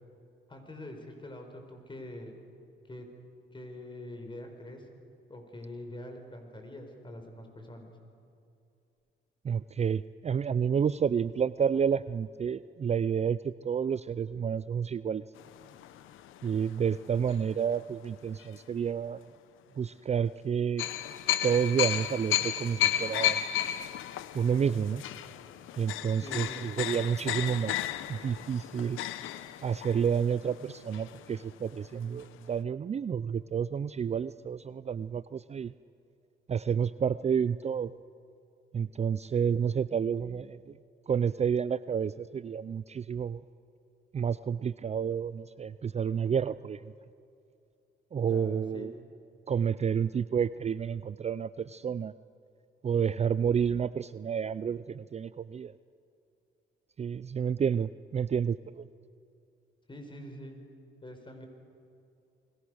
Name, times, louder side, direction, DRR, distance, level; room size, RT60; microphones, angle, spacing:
voice 1, 0.5-2.4 2.9-3.0 3.5-4.9 5.3-7.9 26.2-26.6 48.3-48.9 59.9-60.6 61.0-61.5, left 1 dB, 25° left, 5 dB, 4.7 m, -44 dB
voice 2, 9.4-15.2 16.4-19.2 19.8-20.8 21.4-23.4 24.3-25.0 25.8-27.8 28.1-29.0 29.6-35.7 36.5-37.9 38.7-40.8 41.1-43.4 44.1-46.9 48.1-48.9 49.5-52.1 52.8-55.7 57.0-58.9, right 7 dB, 35° right, 15 dB, 0.5 m, -30 dB
sound 1, 15.4-17.8 18.4-18.6 20.8-31.5 31.8-31.9 32.2-32.4, left 12 dB, 85° left, 0.9 m, -34 dB
29.0 x 21.0 x 6.4 m, 2.6 s
cardioid pair, 90°, 20 cm